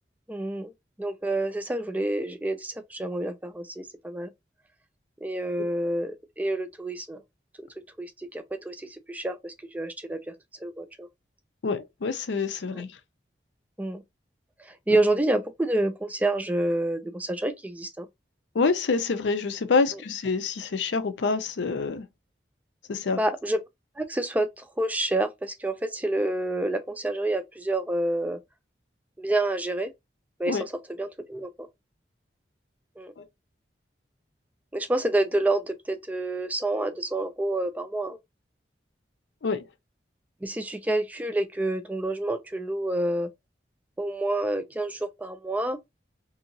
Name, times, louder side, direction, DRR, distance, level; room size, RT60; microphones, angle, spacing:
voice 1, 0.3-0.7 1.0-4.3 5.2-7.2 7.6-7.7 8.0-10.3 10.6-11.1 12.7-12.8 13.8-14.0 14.6-18.1 19.9-20.0 23.1-23.6 24.0-28.4 29.2-29.9 30.4-30.7 31.0-31.7 33.0-33.1 34.7-38.2 40.4-43.3 44.0-45.8, right 1 dB, 10° right, 0.3 m, -28 dB
voice 2, 11.6-12.9 18.5-22.1 22.9-23.2 30.5-30.7 33.2-33.3 39.4-39.7, left 4 dB, 85° left, 0.5 m, -26 dB
2.8 x 2.6 x 2.5 m
head